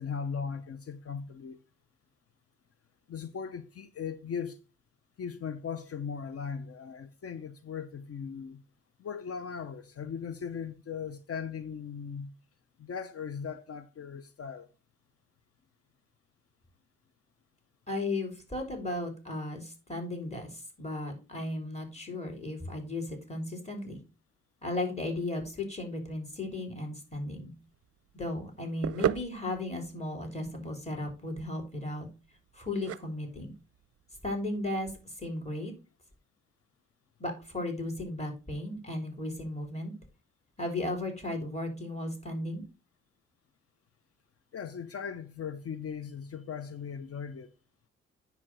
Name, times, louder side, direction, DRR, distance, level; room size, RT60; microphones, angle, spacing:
voice 1, 0.0-1.6 3.1-4.6 5.2-8.6 9.0-12.3 12.8-14.7 44.5-47.5, left 6 dB, 50° left, 0.8 m, -38 dB
voice 2, 17.9-24.0 24.6-27.5 28.1-32.1 32.5-33.5 34.2-35.7 37.2-39.9 40.6-42.6, left 2 dB, 20° left, 3.7 m, -35 dB
sound 1, 27.5-35.4, right 11 dB, 50° right, 0.5 m, -38 dB
9.7 x 3.5 x 6.2 m
hypercardioid pair, 40°, 30 cm